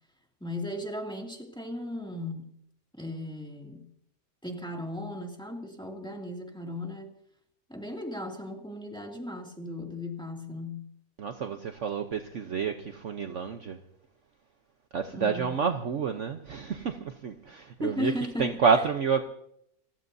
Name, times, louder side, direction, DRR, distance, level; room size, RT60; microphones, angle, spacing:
voice 1, 0.4-2.5 2.9-3.8 4.4-7.1 7.7-10.8 15.1-15.6 17.8-18.9, left 1 dB, 5° left, 1 dB, 2.4 m, -36 dB
voice 2, 11.2-13.8 14.9-18.1 18.4-19.2, right 6 dB, 55° right, 6 dB, 1.1 m, -29 dB
29.5 x 15.5 x 2.7 m, 0.73 s
omnidirectional pair, 1.7 m